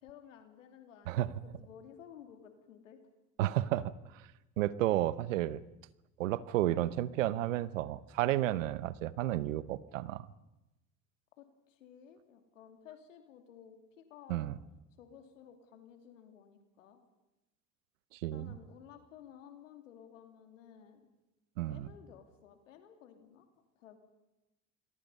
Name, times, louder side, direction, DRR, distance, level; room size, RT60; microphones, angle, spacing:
voice 1, 0.0-3.0 11.4-14.4 15.0-17.0 18.3-21.1 21.7-23.5 23.8-24.0, left 9 dB, 90° left, 6 dB, 2.7 m, -55 dB
voice 2, 3.4-4.3 4.6-5.6 6.2-10.3 14.3-14.5 18.1-18.6 21.6-21.9, right 14 dB, 85° right, 17 dB, 0.9 m, -32 dB
28.0 x 22.0 x 5.5 m, 0.97 s
hypercardioid pair, 75°, 37 cm